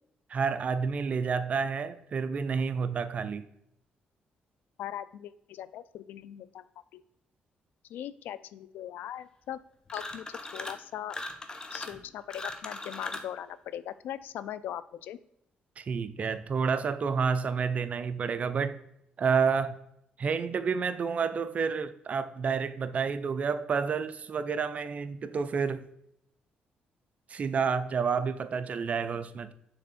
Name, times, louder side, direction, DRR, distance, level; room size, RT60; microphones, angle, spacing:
voice 1, 0.3-3.4 15.8-18.8 19.2-19.8 20.2-25.9 27.3-29.5, right 5 dB, 45° right, 0.5 m, -29 dB
voice 2, 4.8-6.6 6.9-7.0 7.9-9.6 9.9-10.2 10.5-11.2 11.7-15.2, left 11 dB, 85° left, 0.3 m, -40 dB
sound 1, 9.9-10.8 11.1-13.3, left 2 dB, 25° left, 0.7 m, -39 dB
6.6 x 3.4 x 4.2 m
cardioid pair, 95°, 3 cm